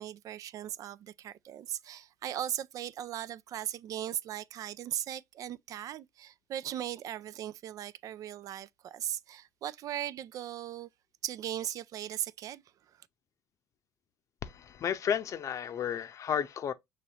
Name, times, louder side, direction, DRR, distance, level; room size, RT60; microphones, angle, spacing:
voice 1, 0.0-10.9 11.2-12.6, right 11 dB, 55° right, 0.4 m, -38 dB
voice 2, 14.4-16.7, left 8 dB, 50° left, 0.6 m, -32 dB
6.0 x 3.1 x 2.8 m
supercardioid pair, 75°, 7 cm